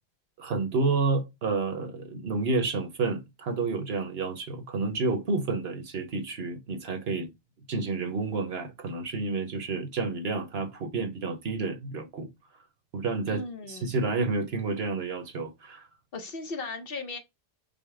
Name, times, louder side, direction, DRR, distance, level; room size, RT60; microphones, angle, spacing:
voice 1, 0.4-7.3 7.7-12.3 12.9-15.9, right 3 dB, 70° right, 1.2 m, -30 dB
voice 2, 13.3-14.0 16.1-17.2, left 3 dB, 60° left, 1.1 m, -37 dB
5.5 x 2.0 x 4.7 m
omnidirectional pair, 1.1 m